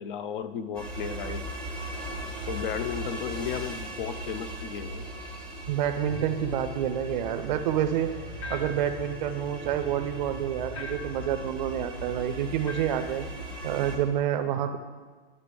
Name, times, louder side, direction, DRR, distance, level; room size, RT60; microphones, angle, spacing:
voice 1, 0.0-1.4 2.5-5.1, left 8 dB, 55° left, 13 dB, 0.5 m, -34 dB
sound 1, 0.7-14.0, right 1 dB, 5° left, 0.6 m, -38 dB
voice 2, 5.7-8.1 8.5-13.3 13.6-14.8, right 10 dB, 45° right, 9 dB, 0.4 m, -28 dB
sound 2, 6.1-11.0, right 1 dB, 20° left, 0.9 m, -46 dB
sound 3, 8.4-9.0 10.7-11.2 12.7-13.1, left 3 dB, 75° left, 1.4 m, -40 dB
10.0 x 6.8 x 3.4 m, 1.4 s
supercardioid pair, 175°, 32 cm